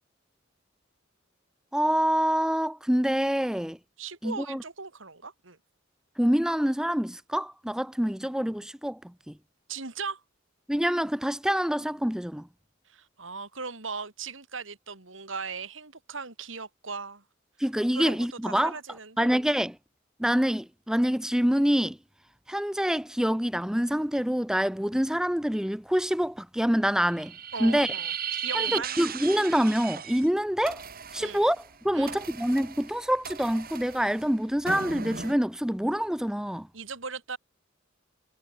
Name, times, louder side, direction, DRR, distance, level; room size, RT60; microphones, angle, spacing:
voice 1, 1.7-3.8 4.2-4.6 6.2-9.3 10.7-12.5 17.6-18.7 19.2-19.8 20.2-22.0 22.5-27.3 27.6-27.9 28.5-30.8 31.1-36.7, equal, 5° right, 0.7 m, -26 dB
voice 2, 4.0-5.6 9.7-10.2 12.9-17.2 17.9-19.3 27.5-29.0 31.2-31.4 31.9-32.2 36.7-37.4, right 4 dB, 75° right, 3.5 m, -38 dB
sound 1, 27.1-30.3 30.6-35.3, right 7 dB, 50° right, 6.4 m, -36 dB
head